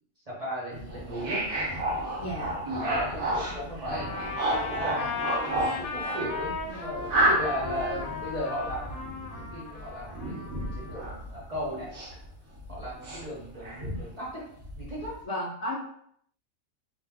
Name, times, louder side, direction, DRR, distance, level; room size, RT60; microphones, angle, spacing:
voice 1, 0.3-1.4 2.6-5.2 5.8-11.9 12.7-14.4 14.7-15.2, equal, 30° right, -7 dB, 0.8 m, -36 dB
sound 1, 0.7-12.3 12.6-14.1 14.6-15.1, right 1 dB, 60° right, 1.0 m, -31 dB
voice 2, 2.2-2.6 15.2-15.8, left 1 dB, 65° left, -4 dB, 0.7 m, -33 dB
Trumpet, 3.9-11.0, left 4 dB, 80° left, 1.0 m, -36 dB
2.6 x 2.2 x 3.4 m, 0.65 s
omnidirectional pair, 1.5 m